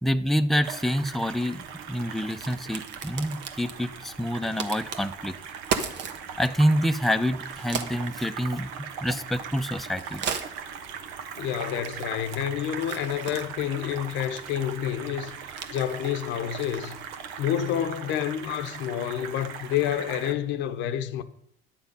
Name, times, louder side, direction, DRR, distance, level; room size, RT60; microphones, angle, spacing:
voice 1, 0.0-5.4 6.4-10.2, equal, ahead, 0.7 m, -27 dB
sound 1, 0.6-20.3, right 7 dB, 85° right, 1.0 m, -40 dB
Crack, 1.3-17.4, right 6 dB, 65° right, 1.3 m, -39 dB
voice 2, 11.4-15.3 15.7-17.0 17.4-21.2, left 10 dB, 75° left, 0.8 m, -29 dB
10.5 x 7.1 x 5.3 m
supercardioid pair, 70°, 19 cm